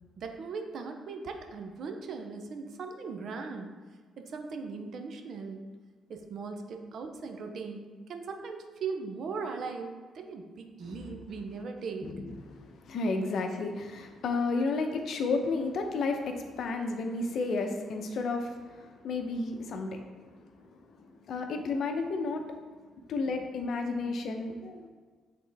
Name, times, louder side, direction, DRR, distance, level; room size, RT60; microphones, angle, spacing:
voice 1, 0.2-3.7 4.2-5.6 6.1-12.1, right 4 dB, 65° right, 5 dB, 0.7 m, -39 dB
voice 2, 10.8-11.2 12.0-20.8 21.3-22.5 23.1-24.9, left 3 dB, 65° left, 5 dB, 0.7 m, -32 dB
7.7 x 3.7 x 3.4 m, 1.4 s
cardioid pair, 90°, 0 cm